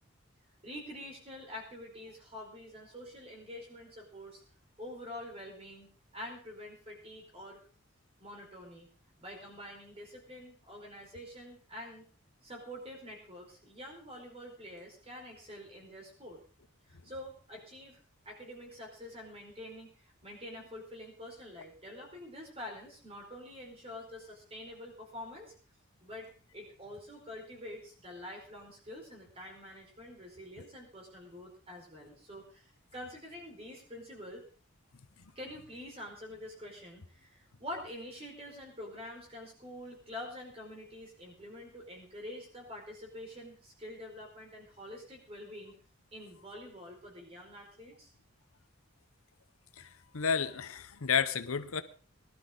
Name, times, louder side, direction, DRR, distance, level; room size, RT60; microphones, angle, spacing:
voice 1, 0.6-4.4 4.8-7.6 8.2-8.9 9.2-12.1 12.4-16.4 16.9-18.0 18.2-25.5 26.0-34.4 35.3-45.7 46.1-48.1, left 1 dB, 25° right, 4.9 m, -46 dB
voice 2, 49.8-51.8, left 6 dB, 75° left, 0.9 m, -31 dB
20.0 x 12.0 x 3.9 m
head